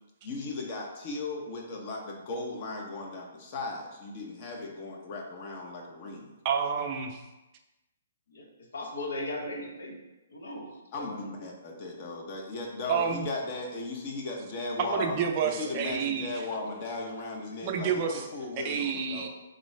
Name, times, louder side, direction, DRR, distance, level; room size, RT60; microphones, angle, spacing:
voice 1, 0.2-6.3 10.9-15.2 15.4-19.3, left 3 dB, 35° left, 0 dB, 0.9 m, -37 dB
voice 2, 6.4-7.2 12.9-13.3 14.8-16.5 17.6-18.3 18.6-19.3, right 7 dB, 35° right, 3 dB, 0.5 m, -29 dB
voice 3, 8.3-10.0 10.3-11.4, left 1 dB, 75° left, 0 dB, 1.0 m, -38 dB
3.9 x 3.7 x 3.2 m, 1.0 s
hypercardioid pair, 145°, 0 cm